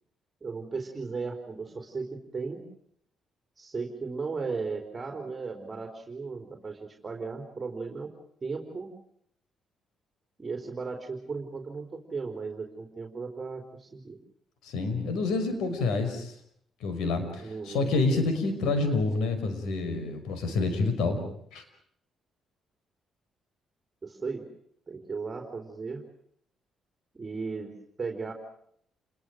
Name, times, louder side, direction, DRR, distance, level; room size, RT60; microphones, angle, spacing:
voice 1, 0.4-2.6 3.6-8.1 8.4-8.9 10.4-14.2 17.4-17.9 24.0-24.5 24.9-26.0 27.1-27.7 28.0-28.3, right 4 dB, 30° right, 4 dB, 3.9 m, -36 dB
voice 2, 14.6-16.3 16.8-21.2 21.5-21.6, left 3 dB, 85° left, 8 dB, 5.7 m, -28 dB
29.0 x 21.5 x 6.5 m, 0.67 s
cardioid pair, 90°, 0 cm